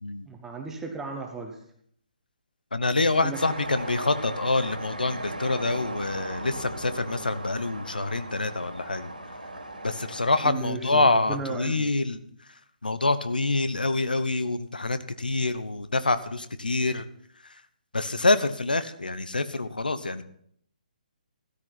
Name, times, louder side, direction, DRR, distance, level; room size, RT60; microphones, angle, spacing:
voice 1, 0.3-1.6 3.2-3.4 10.4-11.9, right 4 dB, 10° right, 3 dB, 1.2 m, -35 dB
voice 2, 2.7-9.1 9.8-12.2 12.8-17.0 17.9-20.2, left 2 dB, 80° left, 13 dB, 1.0 m, -26 dB
sound 1, 3.3-10.5, right 1 dB, 85° right, 3.0 m, -37 dB
13.0 x 13.0 x 4.2 m, 0.66 s
figure-of-eight pair, 135°, 5 cm